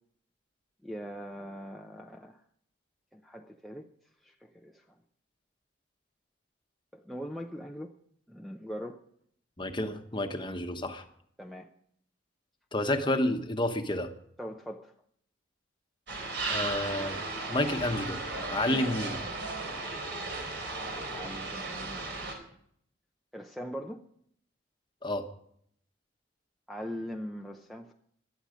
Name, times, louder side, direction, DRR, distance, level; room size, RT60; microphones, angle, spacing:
voice 1, 0.8-2.4 3.1-3.9 4.2-4.8 6.9-7.9 8.3-9.0 11.4-11.7 13.0-13.1 14.4-14.9 21.1-22.4 23.3-24.0 26.7-27.9, equal, ahead, 1 dB, 0.6 m, -41 dB
voice 2, 9.6-11.1 12.7-14.1 16.5-17.2 17.5-18.2 18.5-19.2 25.0-25.2, left 1 dB, 25° left, 6 dB, 1.1 m, -30 dB
sound 1, 16.1-22.3, right 3 dB, 60° right, 3.9 m, -35 dB
17.5 x 11.5 x 5.1 m, 0.68 s
head